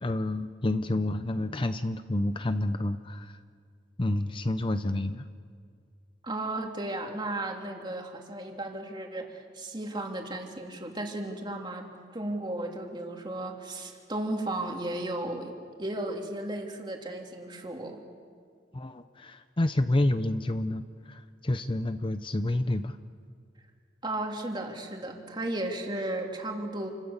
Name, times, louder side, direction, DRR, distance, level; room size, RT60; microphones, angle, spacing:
voice 1, 0.0-3.4 4.0-5.3 18.7-23.0, left 1 dB, 30° left, 10 dB, 0.7 m, -29 dB
voice 2, 6.2-18.0 24.0-26.9, right 1 dB, 25° right, 1 dB, 2.9 m, -35 dB
29.0 x 25.5 x 7.3 m, 2.1 s
head